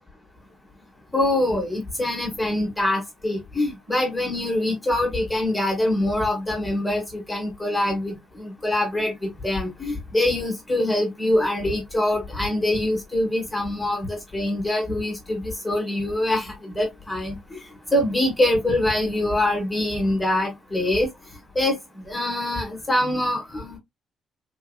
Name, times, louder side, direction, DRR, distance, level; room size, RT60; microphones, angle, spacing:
voice 1, 1.1-17.6 17.9-21.1 21.5-21.8 22.1-23.8, left 1 dB, 5° left, 1.1 m, -24 dB
3.6 x 2.7 x 2.2 m
cardioid pair, 175°, 0 cm